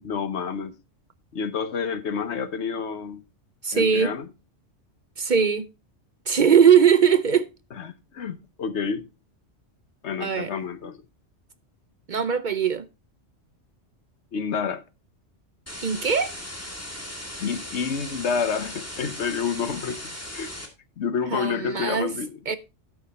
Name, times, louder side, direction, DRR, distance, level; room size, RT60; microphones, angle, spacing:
voice 1, 0.0-0.8 1.3-3.2 3.7-4.3 7.7-9.1 10.0-11.0 14.3-14.8 17.4-20.0 20.3-20.5 21.0-22.3, left 6 dB, 75° left, 1.2 m, -29 dB
voice 2, 3.6-4.1 5.2-5.7 6.3-7.5 10.2-10.5 12.1-12.9 15.8-16.3 21.3-22.1 22.5-22.6, right 7 dB, 50° right, 0.7 m, -20 dB
sound 1, 15.7-20.7, left 1 dB, 10° left, 2.2 m, -37 dB
12.5 x 6.0 x 4.2 m
omnidirectional pair, 1.2 m